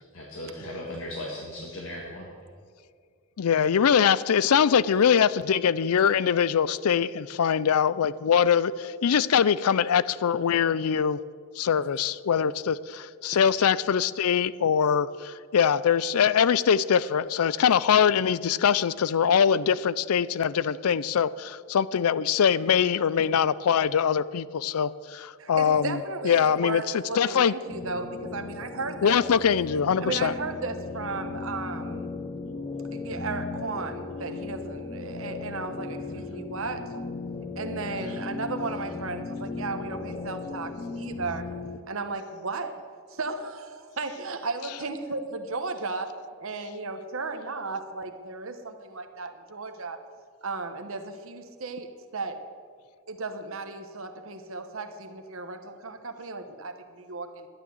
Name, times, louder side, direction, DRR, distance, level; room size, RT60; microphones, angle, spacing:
voice 1, 0.1-2.3, left 1 dB, 70° left, -3 dB, 1.9 m, -37 dB
voice 2, 3.4-11.2 11.6-26.0 26.2-26.8 27.2-27.5 29.0-30.3, left 7 dB, 85° left, 18 dB, 0.4 m, -23 dB
voice 3, 25.4-29.2 30.0-32.1 32.9-36.9 37.6-41.5 41.9-42.8 43.1-50.0 50.4-52.4 53.1-57.5, right 3 dB, 65° right, 7 dB, 1.1 m, -35 dB
sound 1, 27.7-41.8, left 3 dB, 20° left, 0.5 m, -36 dB
12.0 x 9.8 x 7.8 m, 2.1 s
head